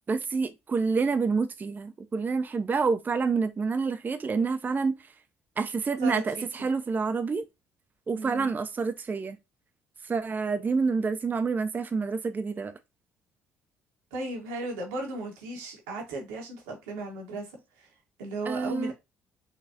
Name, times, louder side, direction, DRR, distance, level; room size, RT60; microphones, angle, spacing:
voice 1, 0.1-5.0 5.6-7.4 8.1-9.4 10.0-12.7 18.5-18.9, right 4 dB, 30° right, 0.4 m, -28 dB
voice 2, 6.0-6.4 8.2-8.5 14.1-17.5 17.8-17.9 18.2-18.9, right 2 dB, 85° right, 1.1 m, -36 dB
4.0 x 2.4 x 2.6 m
hypercardioid pair, 60°, 6 cm